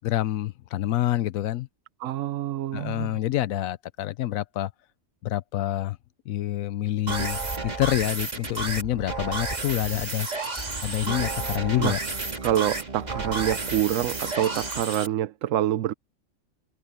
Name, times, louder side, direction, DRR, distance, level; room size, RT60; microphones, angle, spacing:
voice 1, 0.0-1.7 2.7-4.7 5.2-6.0 6.3-10.3 10.8-12.0, left 14 dB, 80° left, 1.1 m, -27 dB
voice 2, 2.0-3.2 11.8-12.0 12.4-15.9, right 12 dB, 70° right, 1.0 m, -26 dB
sound 1, 7.1-15.1, right 3 dB, 30° right, 2.0 m, -31 dB
omnidirectional pair, 1.4 m